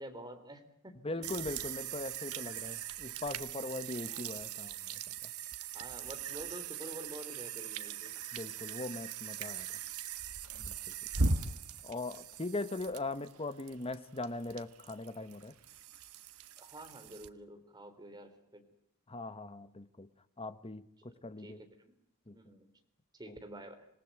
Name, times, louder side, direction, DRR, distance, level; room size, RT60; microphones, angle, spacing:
voice 1, 0.0-1.3 4.1-4.6 5.7-8.1 11.1-11.7 16.6-18.6 21.0-21.9 22.3-22.7 23.2-23.9, right 1 dB, 20° right, 6 dB, 3.6 m, -49 dB
voice 2, 1.0-4.7 5.2-5.3 8.3-9.7 10.7-10.8 11.8-15.5 19.1-20.1 20.4-21.6 22.3-22.4, left 2 dB, 25° left, 13 dB, 1.1 m, -40 dB
sound 1, 1.2-17.3, right 5 dB, 80° right, 1.5 m, -40 dB
26.5 x 19.0 x 9.1 m, 0.76 s
head